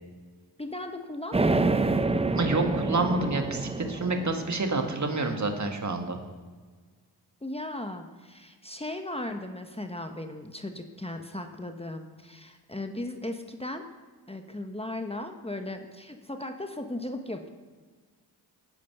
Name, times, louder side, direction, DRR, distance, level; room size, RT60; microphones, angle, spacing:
voice 1, 0.6-2.1 7.4-13.8 14.3-17.5, left 1 dB, 15° left, 6 dB, 1.0 m, -37 dB
sound 1, 1.3-5.2, right 3 dB, 15° right, 0.6 m, -27 dB
voice 2, 2.3-6.2, right 3 dB, 40° right, 4 dB, 1.7 m, -28 dB
10.5 x 9.1 x 5.9 m, 1.4 s
cardioid pair, 50°, 43 cm